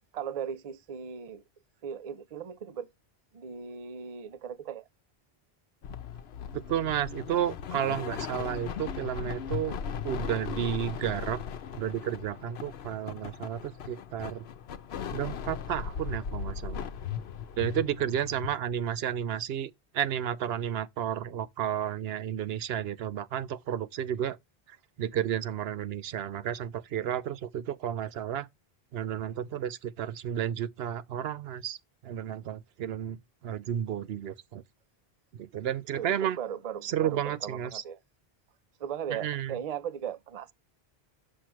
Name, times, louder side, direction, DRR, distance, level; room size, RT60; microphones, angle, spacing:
voice 1, 0.1-1.4 1.8-2.9 3.3-4.9 35.9-38.0 38.8-40.5, right 8 dB, 45° right, 0.6 m, -37 dB
sound 1, 5.8-18.5, left 7 dB, 85° left, 1.0 m, -38 dB
voice 2, 6.5-9.8 10.0-11.4 11.7-14.4 15.1-16.8 17.6-24.4 25.0-28.5 28.9-31.8 32.0-34.6 35.4-36.4 36.8-37.8 39.1-39.6, right 10 dB, 80° right, 0.8 m, -32 dB
6.4 x 5.9 x 3.0 m
omnidirectional pair, 1.0 m